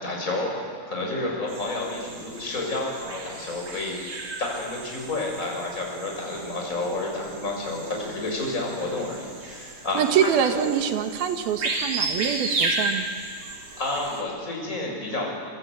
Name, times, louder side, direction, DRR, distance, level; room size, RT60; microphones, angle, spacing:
voice 1, 0.0-10.7 13.8-15.3, left 2 dB, 20° left, -1 dB, 6.9 m, -30 dB
sound 1, 1.5-14.2, right 3 dB, 45° right, 4.4 m, -34 dB
voice 2, 9.9-13.1, right 8 dB, 70° right, 7 dB, 3.2 m, -24 dB
26.5 x 26.0 x 8.3 m, 2.2 s
omnidirectional pair, 4.5 m